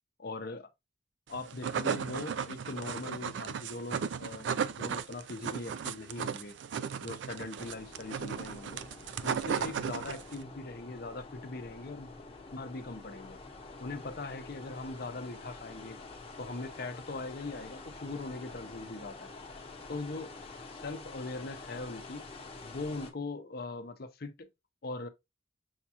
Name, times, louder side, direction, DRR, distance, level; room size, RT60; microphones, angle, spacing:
voice 1, 0.2-0.7 1.3-6.6 7.0-8.8 9.2-12.1 12.5-13.4 13.8-16.0 16.4-19.3 19.9-20.3 20.8-22.2 22.6-24.5 24.8-25.1, left 3 dB, 55° left, 0.6 m, -41 dB
sound 1, 1.3-10.4, right 7 dB, 80° right, 0.4 m, -35 dB
sound 2, 7.6-23.1, left 3 dB, 35° left, 0.9 m, -48 dB
6.4 x 2.3 x 2.9 m
head